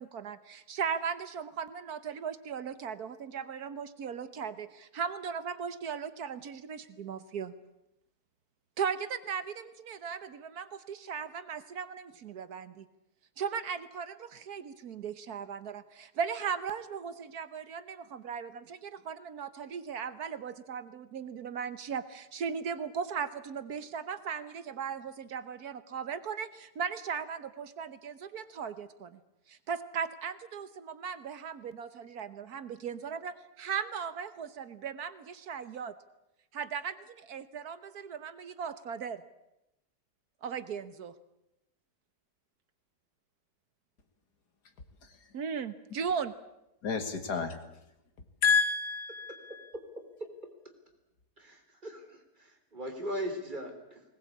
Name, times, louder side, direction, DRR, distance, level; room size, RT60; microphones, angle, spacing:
voice 1, 0.0-7.6 8.8-12.9 13.4-29.2 29.5-35.9 36.5-39.2 40.4-41.1 45.3-46.3, right 7 dB, 70° right, 13 dB, 1.5 m, -37 dB
voice 2, 46.8-47.6 48.4-49.7, left 5 dB, 80° left, 8 dB, 2.5 m, -29 dB
voice 3, 49.3-50.3 51.4-54.0, equal, 30° right, 4 dB, 3.5 m, -40 dB
20.5 x 19.5 x 8.5 m, 0.87 s
omnidirectional pair, 1.7 m